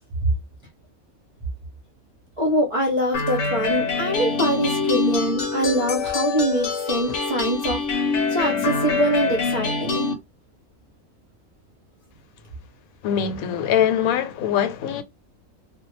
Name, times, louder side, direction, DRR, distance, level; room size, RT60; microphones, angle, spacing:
voice 1, 2.4-10.1, right 1 dB, 35° right, 0.5 m, -24 dB
sound 1, 3.1-10.1, left 4 dB, 65° left, 0.9 m, -25 dB
voice 2, 13.0-15.0, left 9 dB, 85° left, 1.0 m, -22 dB
2.3 x 2.1 x 3.0 m
omnidirectional pair, 1.4 m